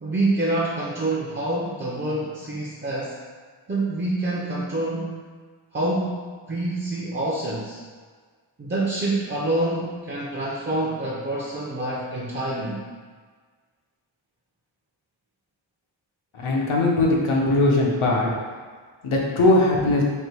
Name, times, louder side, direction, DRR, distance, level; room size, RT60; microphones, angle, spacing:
voice 1, 0.0-3.2 3.7-5.3 5.7-7.8 8.6-12.8, right 2 dB, 25° right, -4 dB, 0.4 m, -26 dB
voice 2, 16.3-18.3 19.0-20.0, left 2 dB, 90° left, -2 dB, 0.9 m, -20 dB
3.4 x 2.6 x 4.3 m, 1.5 s
wide cardioid pair, 110°, 48 cm